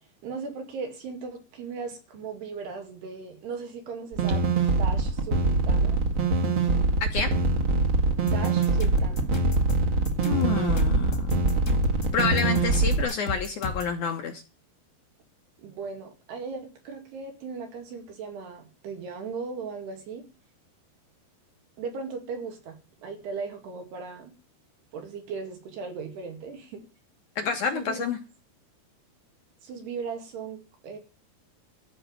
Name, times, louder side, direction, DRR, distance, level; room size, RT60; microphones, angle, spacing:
voice 1, 0.2-4.4 4.8-6.0 8.3-9.3 15.6-20.2 21.8-24.3 24.9-26.9 27.7-28.0 29.6-31.0, right 5 dB, 80° right, 4 dB, 4.3 m, -37 dB
sound 1, 4.1-13.0, right 3 dB, 50° right, 1.7 m, -23 dB
voice 2, 7.0-7.3 10.1-11.3 12.1-14.4 27.4-28.2, left 6 dB, 70° left, 5 dB, 1.9 m, -28 dB
sound 2, 8.3-13.9, left 3 dB, 30° left, 1.4 m, -34 dB
13.0 x 5.4 x 9.3 m, 0.33 s
omnidirectional pair, 4.7 m